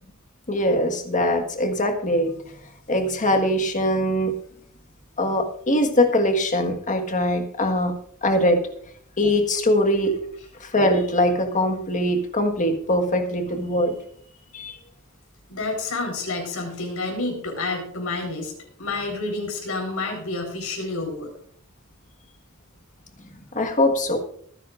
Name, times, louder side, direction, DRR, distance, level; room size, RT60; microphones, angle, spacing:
voice 1, 0.5-2.3 2.9-4.3 5.2-7.9 8.2-8.6 9.2-10.1 10.6-14.0 14.5-14.8 23.5-24.2, left 1 dB, 35° left, 5 dB, 1.6 m, -22 dB
voice 2, 15.5-18.5 18.8-21.3, left 3 dB, 90° left, 2 dB, 4.4 m, -29 dB
24.5 x 9.9 x 2.5 m, 0.62 s
head